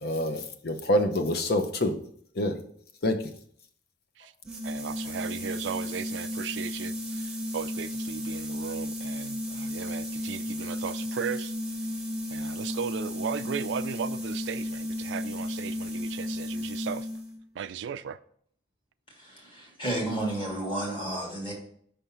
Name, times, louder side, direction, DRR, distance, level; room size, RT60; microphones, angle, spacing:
voice 1, 0.0-1.9 2.4-2.5 3.0-3.2, left 1 dB, 55° left, 0.7 m, -26 dB
sound 1, 4.4-17.4, left 1 dB, 5° right, 0.9 m, -34 dB
voice 2, 4.6-11.5 12.3-17.1 17.6-18.2, right 7 dB, 75° right, 0.3 m, -36 dB
voice 3, 19.2-21.5, right 1 dB, 25° left, 1.8 m, -32 dB
5.7 x 3.5 x 5.6 m
head